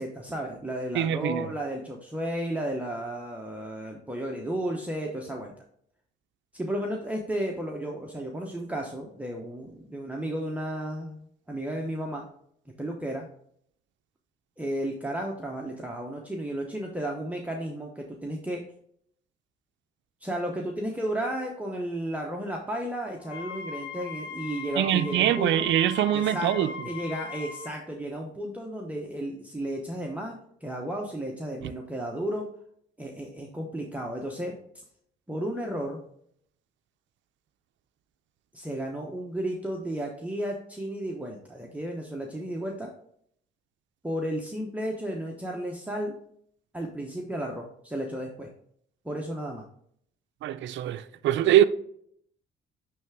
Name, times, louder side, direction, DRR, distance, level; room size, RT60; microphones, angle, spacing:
voice 1, 0.0-5.5 6.5-12.3 12.8-13.3 14.6-18.6 20.2-25.7 26.1-32.5 33.0-34.5 35.3-36.0 38.5-42.9 44.0-46.1 46.7-48.5 49.0-49.6, right 1 dB, 5° right, 0.9 m, -33 dB
voice 2, 0.9-1.5 24.8-26.7 31.6-31.7 50.4-51.6, right 11 dB, 70° right, 0.4 m, -23 dB
Wind instrument woodwind instrument, 23.2-27.7, left 6 dB, 90° left, 1.0 m, -39 dB
8.9 x 3.4 x 3.5 m
cardioid pair, 90°, 20 cm